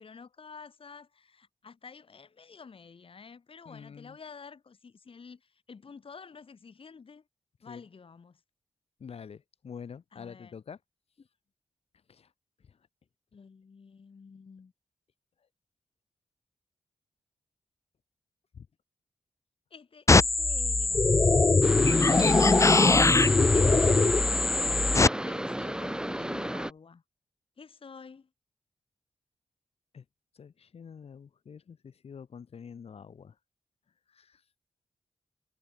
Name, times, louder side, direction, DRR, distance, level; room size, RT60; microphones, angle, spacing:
voice 1, 0.0-7.2 7.6-8.4 10.1-10.5 11.2-11.3 13.3-14.7 19.7-21.5 23.0-24.5 25.2-27.0 27.6-28.3, left 5 dB, 60° left, 3.0 m, -50 dB
voice 2, 3.6-4.2 7.7-7.8 9.0-10.8 12.1-12.3 12.7-12.8 18.5-18.7 29.9-30.0 30.3-33.3 34.1-34.4, left 6 dB, 80° left, 3.1 m, -46 dB
sound 1, 20.1-25.1, left 3 dB, 30° left, 0.6 m, -21 dB
sound 2, 21.6-26.7, right 1 dB, 5° right, 2.5 m, -33 dB
cardioid pair, 55°, 10 cm